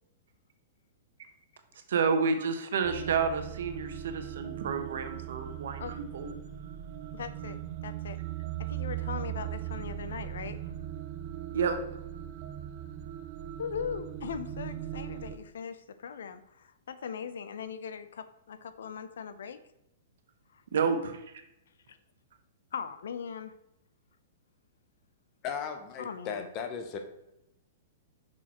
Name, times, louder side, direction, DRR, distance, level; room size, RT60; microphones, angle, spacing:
voice 1, 1.9-6.3 11.5-11.8 20.7-21.2, right 5 dB, 70° right, 7 dB, 1.0 m, -30 dB
sound 1, 2.8-15.4, right 12 dB, 40° right, 0.5 m, -39 dB
voice 2, 7.1-8.2 8.7-10.6 13.6-19.6 20.5-20.6 21.9-22.0 22.7-23.5 26.0-26.5, left 7 dB, 85° left, 12 dB, 0.6 m, -39 dB
voice 3, 25.4-27.0, left 7 dB, 25° left, 7 dB, 0.8 m, -36 dB
6.1 x 4.3 x 4.3 m, 0.85 s
hypercardioid pair, 170°, 0 cm